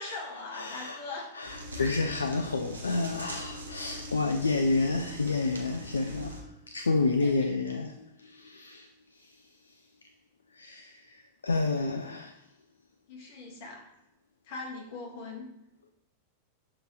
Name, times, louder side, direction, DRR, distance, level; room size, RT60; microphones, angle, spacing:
voice 1, 0.0-1.2 1.8-1.9 7.2-7.5 13.1-13.9 14.4-15.5, left 3 dB, 50° left, 1.7 m, -40 dB
voice 2, 0.5-6.4 6.7-9.4 10.5-12.3, left 3 dB, 75° left, 0.4 m, -30 dB
sound 1, 1.4-6.4, equal, 75° right, 1.4 m, -42 dB
6.7 x 4.4 x 3.8 m
figure-of-eight pair, 90°, 0 cm